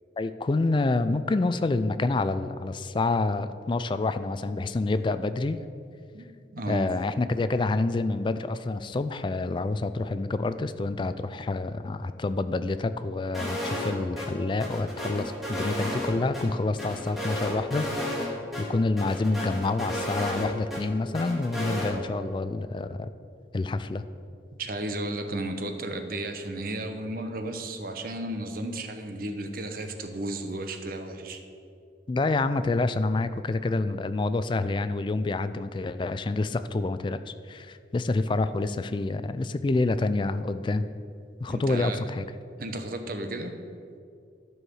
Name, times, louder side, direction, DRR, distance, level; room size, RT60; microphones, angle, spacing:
voice 1, 0.2-5.6 6.7-23.1 23.5-24.0 32.1-37.2 37.5-40.8 41.4-42.3, left 3 dB, 25° left, 12 dB, 0.3 m, -27 dB
voice 2, 6.5-6.9 24.6-31.4 41.5-42.0 42.6-43.5, right 1 dB, 55° right, 6 dB, 0.8 m, -33 dB
sound 1, 13.3-13.9 14.2-14.3 14.6-16.4 16.8-18.3 18.5-18.6 19.0-20.8 21.1-21.9, left 1 dB, ahead, 1.8 m, -32 dB
11.5 x 4.7 x 6.3 m, 2.3 s
head